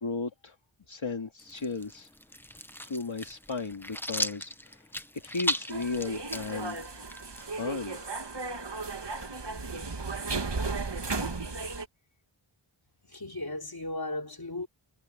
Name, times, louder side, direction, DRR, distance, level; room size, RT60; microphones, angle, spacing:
voice 1, 0.0-0.6 0.9-2.1 2.8-4.9 5.1-6.8 7.6-8.0, left 4 dB, 65° left, 2.2 m, -35 dB
sound 1, 1.4-7.8, equal, 5° left, 0.9 m, -37 dB
sound 2, 5.7-11.8, right 3 dB, 55° right, 1.9 m, -35 dB
voice 2, 13.1-14.7, left 2 dB, 45° left, 3.7 m, -36 dB
wide cardioid pair, 55°, 49 cm